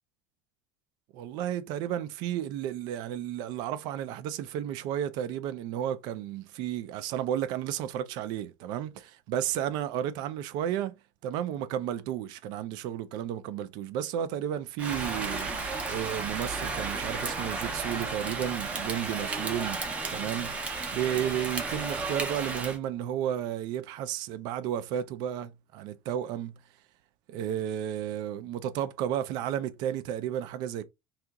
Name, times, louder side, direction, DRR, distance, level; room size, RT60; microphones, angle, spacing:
voice 1, 1.1-10.9 11.2-19.8 20.1-26.5 27.3-30.8, right 10 dB, 55° right, 0.4 m, -33 dB
Rain, 14.8-22.8, right 3 dB, 15° right, 0.6 m, -33 dB
2.8 x 2.4 x 3.5 m
cardioid pair, 170°, 9 cm